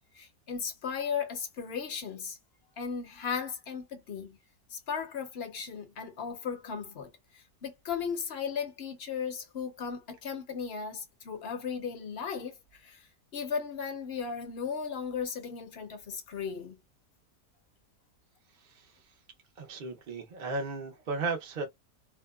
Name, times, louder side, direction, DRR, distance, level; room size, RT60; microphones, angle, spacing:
voice 1, 0.1-2.4 2.8-4.4 4.7-13.1 13.3-16.8, left 6 dB, 55° left, 0.7 m, -36 dB
voice 2, 19.6-21.7, right 3 dB, 55° right, 0.5 m, -35 dB
2.7 x 2.1 x 2.2 m
omnidirectional pair, 1.6 m